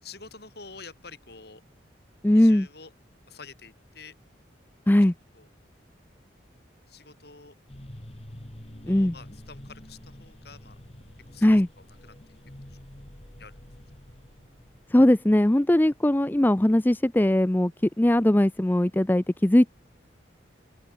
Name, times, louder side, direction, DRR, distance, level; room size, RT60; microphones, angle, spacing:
voice 1, 0.0-1.6 2.3-2.9 3.3-4.1 5.0-5.5 6.9-7.6 8.8-10.8 11.3-12.1 12.7-13.1 13.4-13.6, left 4 dB, 55° left, 3.9 m, -48 dB
voice 2, 2.2-2.7 4.9-5.1 8.9-9.2 11.4-11.7 14.9-19.7, left 1 dB, 10° left, 0.4 m, -20 dB
sound 1, 7.7-15.8, left 1 dB, 30° left, 1.9 m, -47 dB
open air
head